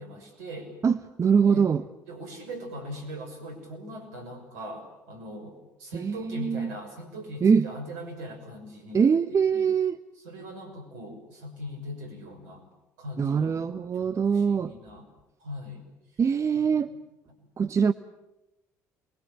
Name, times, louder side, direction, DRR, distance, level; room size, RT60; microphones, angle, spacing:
voice 1, 0.0-0.7 1.4-1.7 2.1-9.7 10.2-12.6 13.0-13.6 13.9-15.1 15.4-15.9 16.1-16.2 16.5-16.8 17.4-17.5, equal, 70° right, 5 dB, 6.1 m, -41 dB
voice 2, 0.8-1.8 5.9-6.7 7.4-7.7 8.9-10.0 13.2-14.7 16.2-16.9 17.6-17.9, right 6 dB, 35° right, 12 dB, 1.0 m, -23 dB
28.0 x 22.0 x 8.7 m, 0.97 s
figure-of-eight pair, 55°, 9 cm